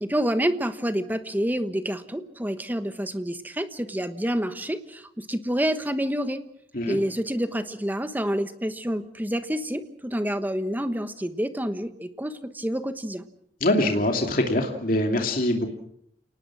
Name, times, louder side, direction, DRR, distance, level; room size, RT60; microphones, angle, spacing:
voice 1, 0.0-6.4 6.9-13.2, equal, 10° right, 10 dB, 1.2 m, -28 dB
voice 2, 13.6-15.7, left 1 dB, 55° left, 3 dB, 2.7 m, -23 dB
29.0 x 19.0 x 6.2 m, 0.70 s
head